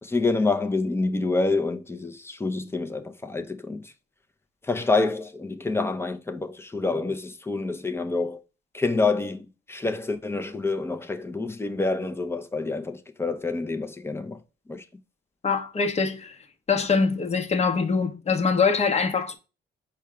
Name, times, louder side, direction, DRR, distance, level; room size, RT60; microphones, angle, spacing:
voice 1, 0.0-3.8 4.7-8.4 8.7-14.4 14.7-14.8, left 3 dB, 10° left, 0.6 m, -27 dB
voice 2, 15.4-16.4 16.7-19.3, left 5 dB, 35° left, 0.9 m, -23 dB
4.6 x 2.3 x 4.7 m
cardioid pair, 90°, 20 cm